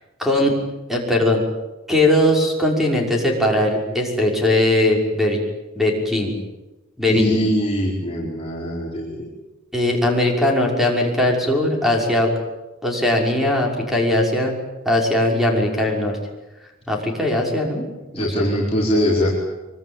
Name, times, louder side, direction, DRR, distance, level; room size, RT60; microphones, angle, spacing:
voice 1, 0.2-0.5 0.9-1.4 1.9-5.4 5.8-6.4 7.0-7.4 9.7-12.3 12.8-14.6 14.8-16.2 16.9-17.8 18.1-18.5, left 1 dB, ahead, 0 dB, 6.0 m, -19 dB
voice 2, 7.1-9.3 18.1-19.3, equal, 30° left, -4 dB, 4.8 m, -22 dB
25.0 x 24.5 x 9.1 m, 1.1 s
head